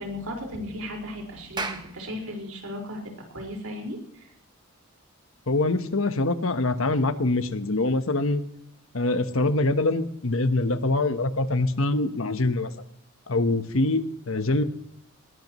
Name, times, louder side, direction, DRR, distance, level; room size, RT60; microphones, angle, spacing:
voice 1, 0.0-3.0 3.3-4.3, left 1 dB, 80° right, 1 dB, 4.9 m, -35 dB
Clapping, 1.6-6.2, right 3 dB, 20° right, 1.1 m, -40 dB
voice 2, 5.5-8.4 8.9-12.7 13.3-14.6, left 2 dB, 65° left, 9 dB, 1.1 m, -24 dB
20.5 x 19.0 x 3.1 m, 0.72 s
head